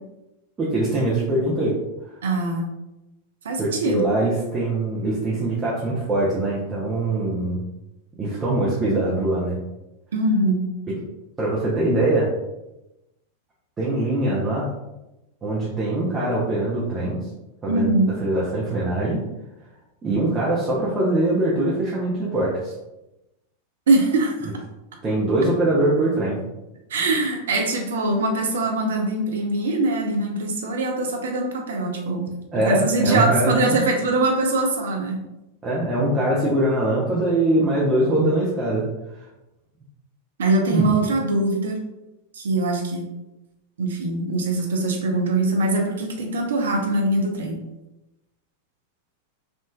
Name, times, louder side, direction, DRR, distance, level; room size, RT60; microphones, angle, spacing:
voice 1, 0.6-1.7 3.6-7.6 8.2-9.6 11.4-12.3 13.8-14.7 15.4-17.2 17.6-17.9 18.2-19.2 20.0-22.7 25.0-26.4 32.5-33.8 35.6-38.8 40.7-40.9, right 1 dB, 20° right, -7 dB, 0.7 m, -22 dB
voice 2, 2.2-2.7 3.4-4.0 10.1-10.6 17.7-18.1 23.9-24.5 26.9-32.3 32.6-35.2 40.4-41.8 42.3-43.1 43.8-47.6, right 2 dB, 65° right, 2 dB, 0.5 m, -22 dB
3.6 x 2.5 x 2.2 m, 0.96 s
figure-of-eight pair, 90°, 0 cm